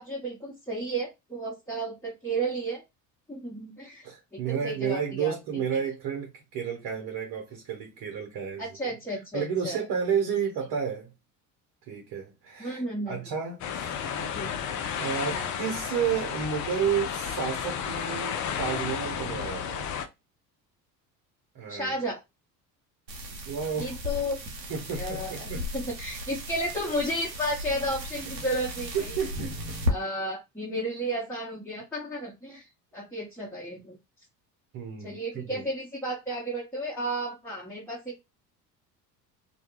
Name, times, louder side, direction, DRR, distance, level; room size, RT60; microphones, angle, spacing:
voice 1, 0.0-2.8 3.3-4.1 4.3-5.6 8.6-9.8 10.2-10.3 12.6-13.2 14.1-14.5 14.8-14.9 15.3-15.5 21.7-22.2 23.8-24.4 25.0-29.2 29.9-32.7 32.9-34.0 35.0-38.2, right 1 dB, 5° left, 1.0 m, -33 dB
voice 2, 4.0-8.9 9.3-11.1 11.8-12.8 13.1-14.0 14.2-14.6 15.0-19.9 21.5-21.9 23.5-24.0 24.7-25.6 28.2-28.3 28.9-29.8 34.7-35.6, right 7 dB, 50° right, 1.0 m, -31 dB
sound 1, 13.6-20.1, left 7 dB, 35° left, 0.6 m, -32 dB
sound 2, 23.1-29.9, left 1 dB, 90° right, 0.8 m, -35 dB
2.3 x 2.2 x 3.0 m
hypercardioid pair, 60°, 49 cm